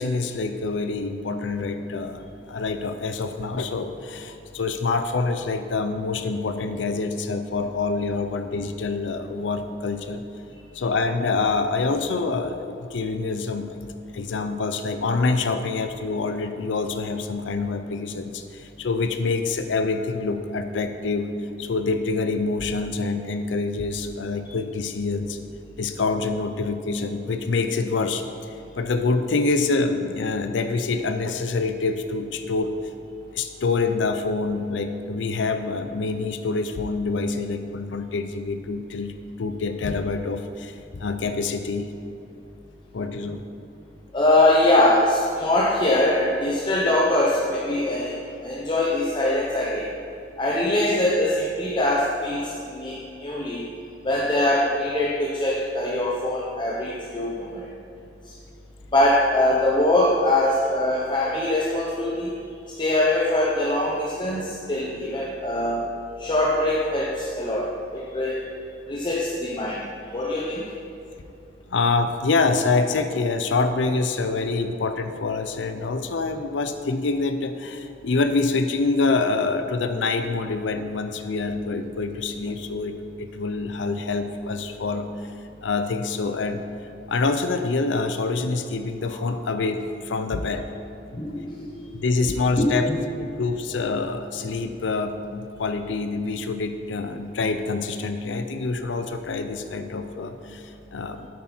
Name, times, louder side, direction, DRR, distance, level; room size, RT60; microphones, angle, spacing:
voice 1, 0.0-10.2 10.7-13.8 14.1-21.3 21.6-25.4 25.8-32.7 33.3-39.1 39.4-41.9 42.9-43.4 68.9-69.0 71.7-85.3 85.6-86.6 87.1-90.7 91.1-91.2 91.9-92.9 93.2-101.3, left 3 dB, 80° left, 8 dB, 0.5 m, -26 dB
voice 2, 44.1-49.9 50.4-53.6 54.0-57.7 58.2-58.3 58.9-62.3 62.7-65.8 66.2-68.5 68.9-70.7 89.1-89.3 91.2-91.8 92.3-93.1, left 1 dB, 25° left, -4 dB, 0.9 m, -23 dB
9.5 x 8.4 x 4.4 m, 2.9 s
head